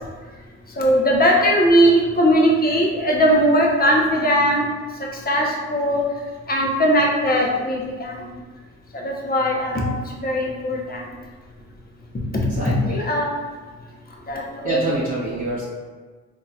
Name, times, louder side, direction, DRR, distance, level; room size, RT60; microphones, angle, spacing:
voice 1, 0.8-4.6 5.3-5.4 5.7-6.0 6.5-8.3 8.9-9.9 10.1-11.0 12.3-13.3 14.3-14.9, equal, 30° left, -1 dB, 0.9 m, -19 dB
voice 2, 12.3-13.0 14.6-15.6, right 1 dB, 30° right, -7 dB, 1.0 m, -26 dB
4.0 x 2.8 x 2.4 m, 1.4 s
supercardioid pair, 70°, 30 cm